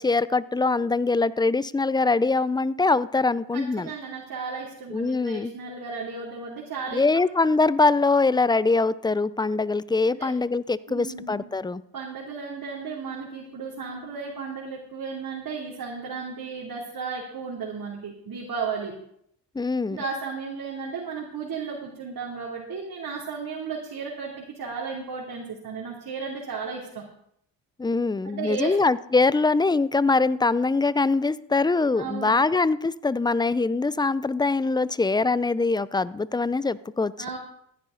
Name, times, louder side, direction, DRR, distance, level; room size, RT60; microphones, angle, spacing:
voice 1, 0.0-3.9 4.9-5.5 6.9-11.8 19.5-20.0 27.8-37.1, left 3 dB, 10° left, 19 dB, 0.5 m, -23 dB
voice 2, 3.5-7.2 10.1-10.3 10.9-11.4 11.9-18.9 19.9-27.0 28.2-28.7 31.9-32.4 37.2-37.4, right 5 dB, 45° right, -3 dB, 3.1 m, -34 dB
15.0 x 10.0 x 3.9 m, 0.72 s
supercardioid pair, 60°, 45 cm